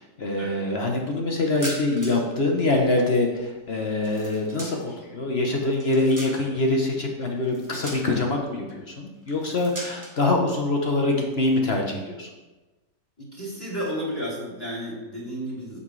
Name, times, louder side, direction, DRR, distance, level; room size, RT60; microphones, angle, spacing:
voice 1, 0.0-12.3, left 2 dB, 45° left, 1 dB, 1.0 m, -24 dB
sound 1, 1.4-2.3 2.6-5.0 5.5-6.7 7.4-8.4 9.2-10.2, right 1 dB, 10° right, 1.1 m, -40 dB
voice 2, 13.2-15.8, equal, 15° left, -6 dB, 2.7 m, -32 dB
8.2 x 7.9 x 3.2 m, 1.1 s
omnidirectional pair, 1.9 m